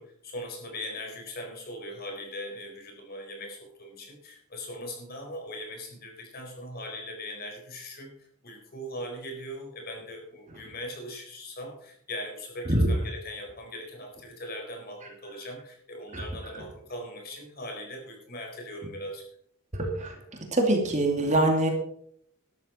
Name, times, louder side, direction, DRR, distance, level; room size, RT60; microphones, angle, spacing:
voice 1, 0.0-19.2, left 1 dB, 45° left, 2 dB, 4.3 m, -40 dB
voice 2, 19.7-20.2 20.5-21.7, right 1 dB, 30° right, 2 dB, 2.5 m, -24 dB
13.0 x 12.5 x 4.4 m, 0.66 s
head